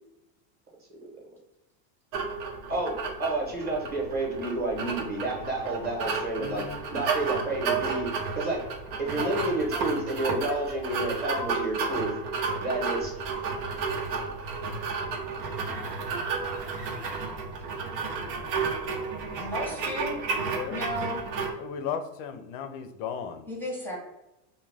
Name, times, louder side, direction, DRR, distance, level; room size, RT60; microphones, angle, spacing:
sound 1, 2.1-21.5, right 4 dB, 80° right, 0.8 m, -32 dB
voice 1, 2.7-6.7 6.9-8.6 9.0-12.1 12.6-13.1, right 2 dB, 20° right, -2 dB, 0.9 m, -30 dB
voice 2, 6.3-6.8 18.3-18.5 20.0-20.8 21.6-23.5, left 7 dB, 50° left, 8 dB, 0.5 m, -36 dB
sound 2, 13.0-19.6, right 4 dB, 50° right, 0.5 m, -46 dB
voice 3, 19.3-20.1 20.7-21.2 23.5-24.0, left 1 dB, 5° left, -4 dB, 0.7 m, -33 dB
2.3 x 2.2 x 3.2 m, 0.93 s
supercardioid pair, 130°, 49 cm